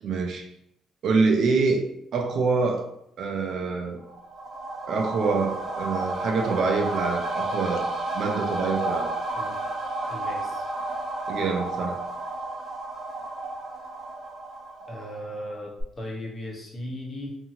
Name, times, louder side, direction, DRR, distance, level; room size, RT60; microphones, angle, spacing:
voice 1, 0.0-0.5 1.0-1.8 2.1-2.9 3.2-4.0 4.9-7.8 8.1-9.1 11.3-12.0, right 4 dB, 65° right, 2 dB, 0.5 m, -25 dB
sound 1, 4.0-15.5 15.8-15.9, right 2 dB, 45° right, 0.9 m, -32 dB
voice 2, 10.1-10.6 14.9-17.4, left 1 dB, 30° left, -2 dB, 0.9 m, -37 dB
2.7 x 2.6 x 2.8 m, 0.77 s
cardioid pair, 90°, 0 cm